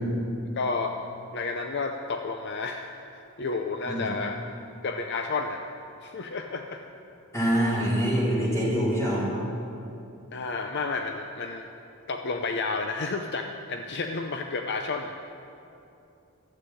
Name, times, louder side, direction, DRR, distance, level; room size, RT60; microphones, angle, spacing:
voice 1, 0.6-1.0 1.3-4.5 4.8-5.6 6.0-6.8 10.3-11.7 12.1-15.1, left 4 dB, 50° left, 5 dB, 0.6 m, -31 dB
voice 2, 7.3-9.3, equal, 15° left, -7 dB, 3.9 m, -25 dB
12.5 x 8.1 x 9.8 m, 2.8 s
head